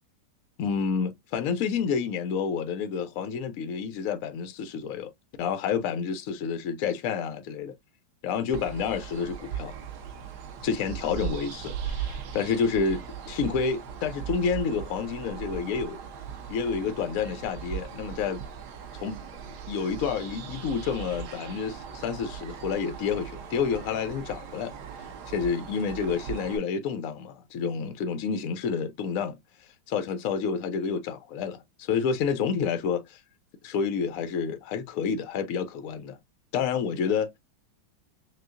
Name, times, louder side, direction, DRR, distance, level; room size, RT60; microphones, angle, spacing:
voice 1, 0.6-5.1 5.4-7.7 8.2-9.7 10.6-16.0 16.5-18.4 18.9-19.2 19.7-24.8 25.3-29.4 29.9-33.2 33.6-36.2 36.5-37.3, left 6 dB, 75° left, 0.7 m, -29 dB
sound 1, 8.5-26.6, right 8 dB, 65° right, 1.2 m, -39 dB
6.3 x 2.2 x 2.4 m
omnidirectional pair, 2.2 m